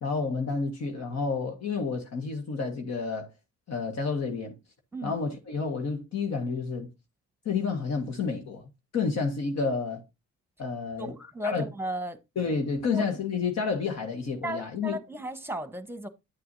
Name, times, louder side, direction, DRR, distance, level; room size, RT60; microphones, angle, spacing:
voice 1, 0.0-3.3 3.7-4.5 5.0-6.9 7.4-10.0 10.6-11.2 11.4-11.7 12.3-15.0, left 4 dB, 60° left, 1.6 m, -30 dB
voice 2, 11.0-12.2 12.9-13.1 14.4-16.1, equal, 10° right, 1.2 m, -35 dB
9.7 x 6.7 x 2.7 m
cardioid pair, 90°, 30 cm